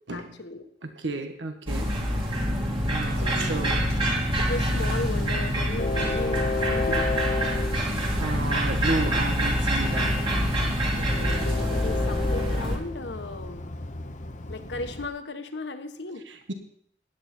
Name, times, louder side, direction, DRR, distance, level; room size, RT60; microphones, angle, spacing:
voice 1, 0.1-0.6 3.2-7.1 11.0-13.6 14.5-16.2, left 2 dB, 65° left, 7 dB, 1.3 m, -36 dB
voice 2, 0.8-2.2 2.9-3.9 8.2-10.1 16.3-16.5, right 2 dB, 75° right, 6 dB, 1.4 m, -32 dB
sound 1, 1.7-12.8, equal, 30° right, 2.5 m, -26 dB
Train, 3.8-15.1, left 3 dB, 40° left, 1.0 m, -33 dB
15.5 x 11.0 x 4.4 m, 0.67 s
head